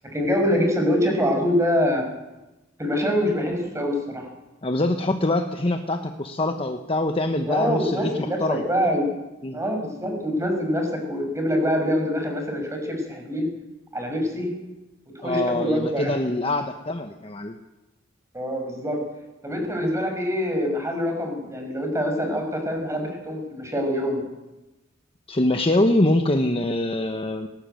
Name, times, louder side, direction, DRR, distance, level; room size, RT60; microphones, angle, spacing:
voice 1, 0.1-2.1 2.8-4.3 7.5-9.1 9.5-13.5 13.9-14.5 15.2-16.2 18.3-19.0 19.4-24.2, equal, 15° right, 3 dB, 5.8 m, -25 dB
voice 2, 4.6-8.6 9.4-9.6 15.2-17.6 25.3-27.5, left 1 dB, 30° left, 5 dB, 1.2 m, -24 dB
20.0 x 18.0 x 9.2 m, 1.0 s
head